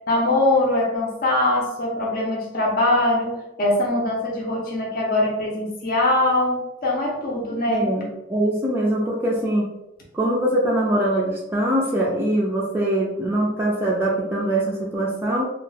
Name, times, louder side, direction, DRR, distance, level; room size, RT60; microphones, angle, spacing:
voice 1, 0.1-7.8, left 2 dB, 50° left, -3 dB, 0.6 m, -22 dB
voice 2, 7.7-9.7 10.1-15.5, right 1 dB, 10° right, -4 dB, 0.3 m, -22 dB
2.3 x 2.1 x 3.2 m, 0.91 s
head